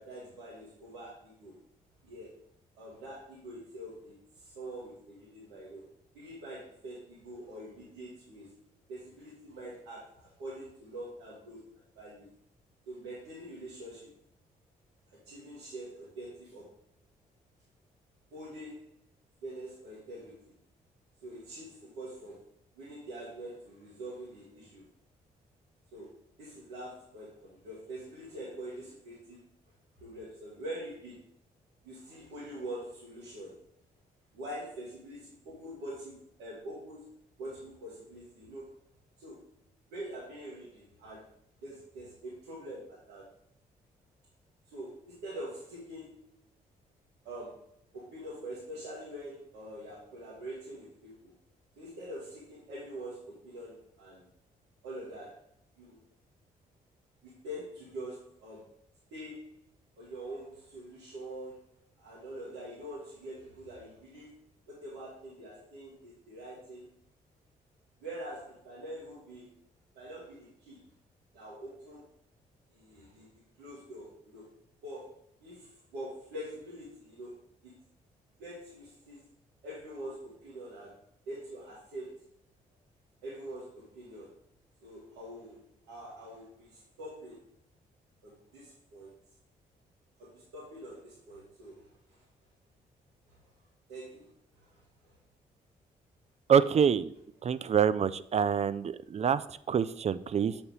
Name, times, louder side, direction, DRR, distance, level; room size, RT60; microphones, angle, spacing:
voice 1, 0.0-1.6 2.0-2.3 2.7-8.6 8.9-11.6 11.9-12.3 12.8-14.1 15.1-16.7 18.3-19.0 19.4-20.6 21.2-22.5 22.7-24.8 25.9-29.4 30.0-31.2 31.8-33.6 34.3-37.1 37.4-38.7 39.2-39.5 39.9-41.3 41.6-43.3 44.7-46.3 47.2-51.3 51.8-54.2 54.8-55.4 55.8-56.0 57.2-58.7 59.1-59.6 60.0-66.9 68.0-69.5 69.9-70.8 71.3-72.0 72.7-74.5 74.8-77.3 77.6-77.8 78.4-79.2 79.6-82.2 83.2-84.4 84.8-87.4 88.2-89.2 90.2-92.2 93.3-93.4 93.9-95.2, right 1 dB, 85° right, -7 dB, 1.5 m, -45 dB
voice 2, 96.5-97.1 97.4-100.6, right 7 dB, 35° right, 15 dB, 0.4 m, -26 dB
6.7 x 2.8 x 5.4 m, 0.71 s
hypercardioid pair, 50°, 19 cm